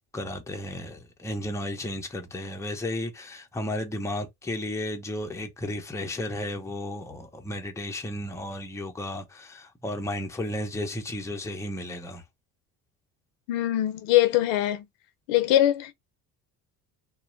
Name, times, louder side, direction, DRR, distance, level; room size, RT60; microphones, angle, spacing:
voice 1, 0.1-12.2, left 1 dB, 5° left, 0.6 m, -33 dB
voice 2, 13.5-14.8 15.3-15.9, left 13 dB, 80° left, 0.7 m, -22 dB
2.7 x 2.1 x 2.5 m
supercardioid pair, 80°, 43 cm